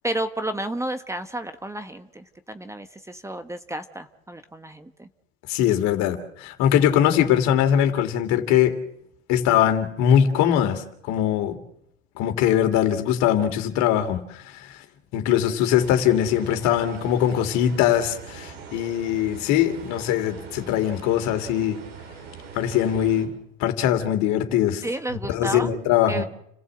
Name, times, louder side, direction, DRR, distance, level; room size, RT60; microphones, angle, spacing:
voice 1, 0.0-5.1 24.8-25.7 26.1-26.2, right 1 dB, 10° right, 9 dB, 1.3 m, -31 dB
voice 2, 5.5-8.7 9.3-11.6 12.2-14.7 15.1-21.8 22.5-23.3 23.6-24.8 25.3-26.3, left 10 dB, 60° left, 7 dB, 3.2 m, -21 dB
sound 1, 15.8-23.3, right 6 dB, 75° right, 6.6 m, -41 dB
30.0 x 15.5 x 8.0 m, 0.76 s
hypercardioid pair, 90°, 32 cm